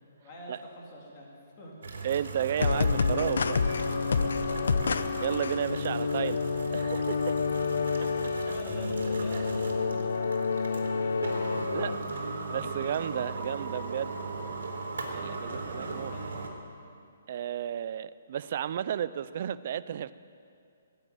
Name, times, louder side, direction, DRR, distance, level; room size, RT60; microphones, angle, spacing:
voice 1, 0.0-1.7 2.2-2.3 4.0-5.0 8.4-12.8 15.4-16.6, equal, 20° left, -3 dB, 2.6 m, -46 dB
sound 1, 1.8-16.5, right 3 dB, 75° right, 3.1 m, -38 dB
voice 2, 2.0-3.6 5.2-6.4 6.7-7.3 8.0-8.1 11.7-12.0 12.5-14.2 15.1-16.1 17.3-20.1, right 9 dB, 35° right, 15 dB, 0.4 m, -32 dB
sound 2, 2.6-12.0, left 5 dB, 70° left, 0.7 m, -29 dB
19.5 x 8.0 x 9.2 m, 2.4 s
hypercardioid pair, 175°, 0 cm